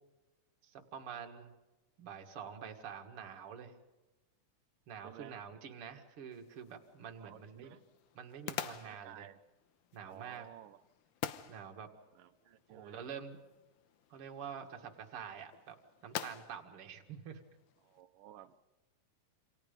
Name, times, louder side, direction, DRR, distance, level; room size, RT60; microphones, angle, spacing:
voice 1, 0.6-1.5 2.0-3.7 4.9-7.8 8.1-9.3 9.9-10.5 11.5-11.9 12.7-13.4 14.1-15.8 16.0-17.4, right 7 dB, 45° right, 4 dB, 2.5 m, -47 dB
voice 2, 5.0-5.4 7.1-7.8 8.8-9.4 10.1-10.8 12.2-13.0 17.8-18.6, right 12 dB, 90° right, 9 dB, 2.5 m, -54 dB
sound 1, 6.3-18.0, left 11 dB, 80° left, 2.5 m, -48 dB
28.5 x 27.0 x 5.3 m, 1.1 s
omnidirectional pair, 3.7 m